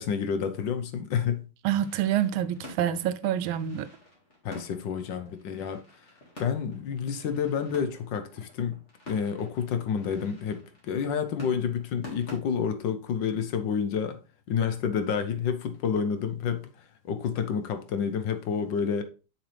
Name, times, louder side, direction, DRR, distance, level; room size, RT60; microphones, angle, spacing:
voice 1, 0.0-1.4 4.4-5.8 6.4-8.7 9.1-14.2 14.5-16.6 17.0-19.0, left 7 dB, 70° left, 1.4 m, -29 dB
voice 2, 1.6-3.9, right 11 dB, 80° right, 1.4 m, -27 dB
sound 1, 1.7-12.4, left 1 dB, 35° left, 2.3 m, -48 dB
7.0 x 6.0 x 3.3 m
omnidirectional pair, 2.3 m